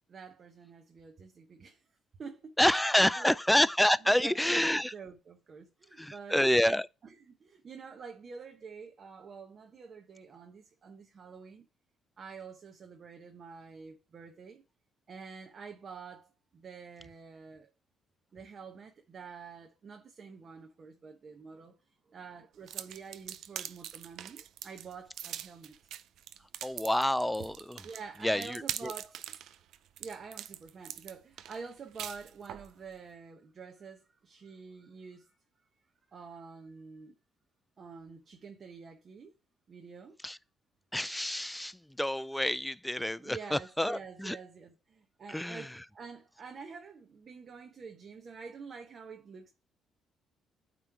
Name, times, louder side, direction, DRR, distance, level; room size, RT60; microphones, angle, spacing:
voice 1, 0.1-1.8 2.2-2.6 3.2-3.4 4.1-6.4 7.0-11.7 12.2-14.6 15.1-17.7 18.3-21.8 22.1-25.8 27.8-29.3 30.0-35.4 36.1-37.2 37.8-39.3 39.7-40.2 43.2-49.5, right 5 dB, 45° right, 0.8 m, -47 dB
voice 2, 2.6-4.9 6.0-6.9 26.6-27.9 28.2-28.9 40.2-40.4 40.9-44.4 45.3-45.8, left 1 dB, 5° left, 0.3 m, -28 dB
sound 1, 22.7-32.7, right 11 dB, 70° right, 0.4 m, -42 dB
9.0 x 3.1 x 4.6 m
cardioid pair, 95°, 0 cm